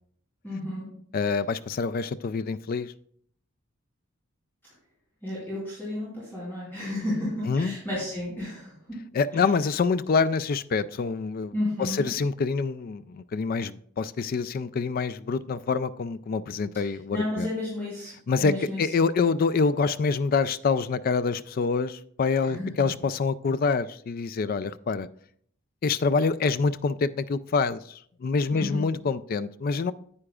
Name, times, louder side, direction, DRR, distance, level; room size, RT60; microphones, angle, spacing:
voice 1, 0.4-0.9 5.2-9.0 9.3-9.4 11.5-12.1 16.8-18.1 18.4-18.8 22.4-22.9 28.5-28.9, left 1 dB, 10° left, -9 dB, 3.2 m, -32 dB
voice 2, 1.1-2.9 7.5-7.8 9.1-17.5 18.3-25.1 25.8-29.9, left 4 dB, 45° left, 15 dB, 0.3 m, -26 dB
9.6 x 8.7 x 2.4 m, 0.62 s
head